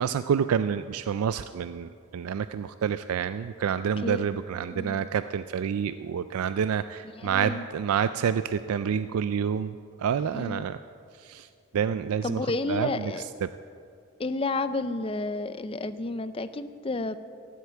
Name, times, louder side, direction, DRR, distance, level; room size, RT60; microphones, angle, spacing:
voice 1, 0.0-10.8 11.2-11.5 11.7-13.5, right 7 dB, 85° right, 12 dB, 0.3 m, -28 dB
voice 2, 4.7-5.0 7.2-7.7 10.3-10.7 12.2-13.2 14.2-17.2, left 2 dB, 25° left, 12 dB, 0.5 m, -31 dB
14.0 x 8.3 x 8.2 m, 2.4 s
head